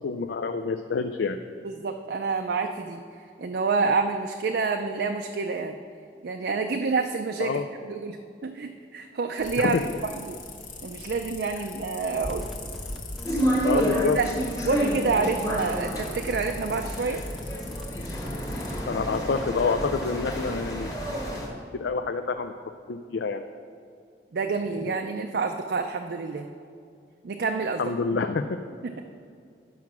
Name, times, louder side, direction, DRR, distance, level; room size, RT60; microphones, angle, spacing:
voice 1, 0.0-1.4 7.4-7.6 9.6-10.0 13.6-14.2 18.9-22.5 22.9-23.4 27.8-28.6, left 4 dB, 80° left, 8 dB, 0.4 m, -28 dB
voice 2, 1.6-5.7 6.2-8.2 8.4-9.8 10.3-10.4 10.8-12.5 13.7-13.8 14.2-14.3 14.6-17.2 24.3-26.5 27.2-27.8 28.8-29.0, right 4 dB, 65° right, 4 dB, 0.4 m, -28 dB
sound 1, 9.4-18.8, left 3 dB, 45° left, 1.3 m, -41 dB
sound 2, 12.2-21.4, equal, ahead, 0.7 m, -40 dB
sound 3, 13.2-21.5, equal, 20° left, 1.3 m, -30 dB
9.4 x 5.8 x 6.0 m, 2.3 s
head